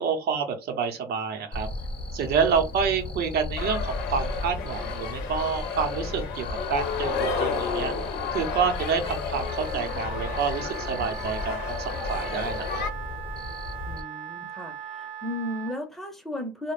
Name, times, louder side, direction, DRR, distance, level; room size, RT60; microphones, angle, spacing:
voice 1, 0.0-1.7 2.1-7.9 8.3-12.9, right 6 dB, 70° right, 0.8 m, -28 dB
Cricket, 1.5-14.0, left 2 dB, 35° left, 0.8 m, -35 dB
sound 1, 3.6-12.9, left 5 dB, 90° left, 0.6 m, -32 dB
Wind instrument woodwind instrument, 9.4-15.8, right 9 dB, 45° right, 0.4 m, -39 dB
voice 2, 13.9-16.7, left 1 dB, ahead, 0.7 m, -35 dB
2.2 x 2.0 x 3.1 m
cardioid pair, 110°, 17 cm